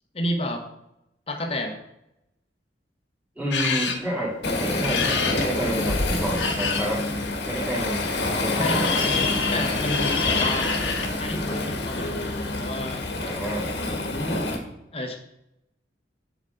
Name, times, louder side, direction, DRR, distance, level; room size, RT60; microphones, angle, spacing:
voice 1, 0.1-0.6 1.3-1.8 8.3-8.8 9.5-13.0 13.9-14.5 14.9-15.2, left 1 dB, 35° left, 4 dB, 1.2 m, -31 dB
voice 2, 3.3-7.0 7.5-8.1 8.4-8.9 13.2-13.7, right 1 dB, 10° right, -7 dB, 3.2 m, -29 dB
sound 1, 3.5-3.9 4.8-6.8 8.2-11.1, left 4 dB, 85° left, 1.3 m, -26 dB
Waves surf, 4.4-14.6, left 2 dB, 65° left, 1.5 m, -27 dB
7.3 x 7.1 x 3.9 m, 0.83 s
head